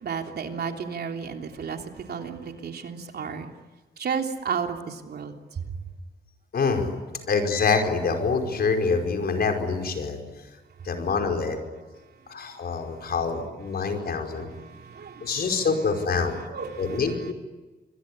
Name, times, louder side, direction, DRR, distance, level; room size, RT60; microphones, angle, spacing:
voice 1, 0.0-3.5 4.0-5.3 14.4-15.5 16.5-17.0, right 6 dB, 65° right, 4 dB, 3.2 m, -33 dB
voice 2, 6.5-6.9 7.3-10.2 10.8-11.6 12.3-14.5 15.2-16.4 16.8-17.3, left 4 dB, 65° left, 4 dB, 5.1 m, -25 dB
27.0 x 22.0 x 10.0 m, 1.2 s
wide cardioid pair, 110°, 18 cm